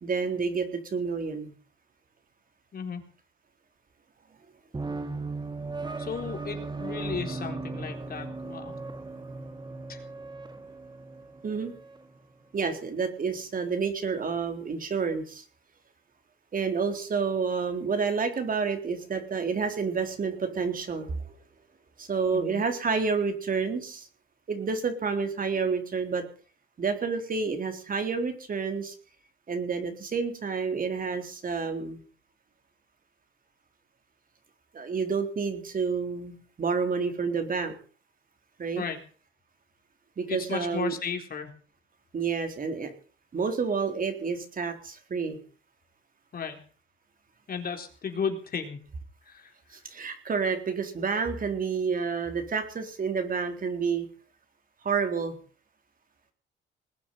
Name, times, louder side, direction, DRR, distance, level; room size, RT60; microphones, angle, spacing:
voice 1, 0.0-1.5 11.4-11.7 12.5-15.4 16.5-21.3 22.0-24.1 24.5-26.2 26.8-28.9 29.5-32.0 34.7-37.7 38.6-38.8 40.2-40.9 42.1-42.9 43.3-45.4 49.7-54.1 54.8-55.4, right 5 dB, 45° right, 6 dB, 3.8 m, -29 dB
sound 1, 4.7-12.1, right 3 dB, 20° right, 2.1 m, -37 dB
voice 2, 6.0-8.7 9.9-10.0 22.3-22.6 38.8-39.0 40.3-41.5 46.3-46.6 47.5-48.8 49.3-49.5, left 6 dB, 50° left, 4 dB, 4.1 m, -34 dB
20.5 x 7.3 x 9.3 m, 0.41 s
cardioid pair, 90°, 20 cm